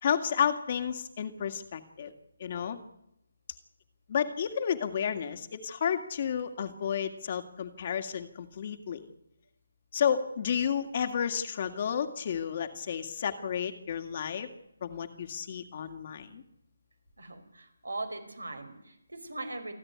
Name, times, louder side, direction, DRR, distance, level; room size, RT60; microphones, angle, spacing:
voice 1, 0.0-2.1 2.4-2.8 4.1-9.0 9.9-14.5 14.8-16.4, left 8 dB, 40° left, 7 dB, 2.1 m, -31 dB
voice 2, 17.2-19.7, right 2 dB, 90° right, 5 dB, 5.2 m, -40 dB
28.0 x 11.0 x 9.7 m, 0.82 s
figure-of-eight pair, 155°, 0 cm